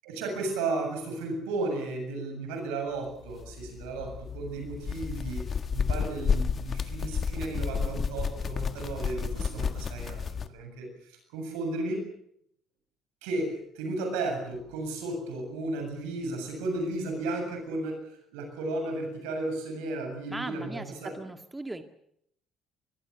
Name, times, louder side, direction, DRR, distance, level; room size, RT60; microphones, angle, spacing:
voice 1, 0.0-12.0 13.2-18.0 18.3-21.1, right 2 dB, 75° right, 5 dB, 7.5 m, -34 dB
sound 1, 3.2-10.5, left 6 dB, 45° left, 1.7 m, -31 dB
voice 2, 20.3-21.8, right 2 dB, 15° right, 7 dB, 2.0 m, -38 dB
24.5 x 21.5 x 7.1 m, 0.71 s
hypercardioid pair, 55°, 0 cm